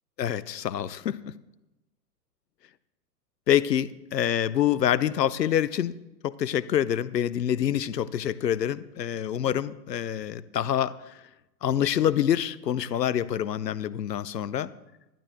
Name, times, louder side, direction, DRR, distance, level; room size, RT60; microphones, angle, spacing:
voice 1, 0.2-1.3 3.5-5.9 6.2-11.2 11.6-14.7, left 10 dB, 75° left, 17 dB, 0.7 m, -26 dB
12.0 x 12.0 x 3.8 m, 0.97 s
figure-of-eight pair, 110°, 50 cm